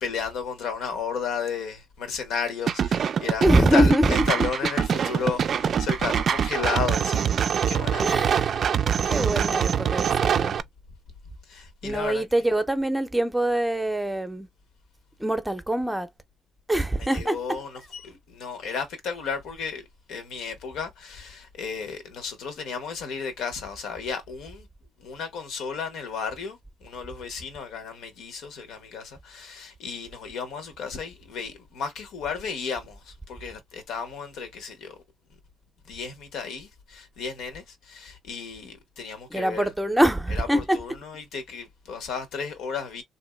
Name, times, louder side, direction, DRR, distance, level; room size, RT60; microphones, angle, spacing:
voice 1, 0.0-3.5 3.7-9.1 11.5-12.2 17.1-24.7 25.0-35.0 35.9-39.7 40.3-43.0, left 6 dB, 85° left, 1.0 m, -33 dB
sound 1, 2.7-10.6, right 8 dB, 55° right, 0.3 m, -24 dB
voice 2, 3.4-4.3 8.0-8.5 9.1-10.5 11.8-14.5 15.2-16.1 16.7-17.4 39.3-40.8, right 1 dB, 5° right, 0.6 m, -24 dB
2.9 x 2.6 x 2.2 m
cardioid pair, 90°, 0 cm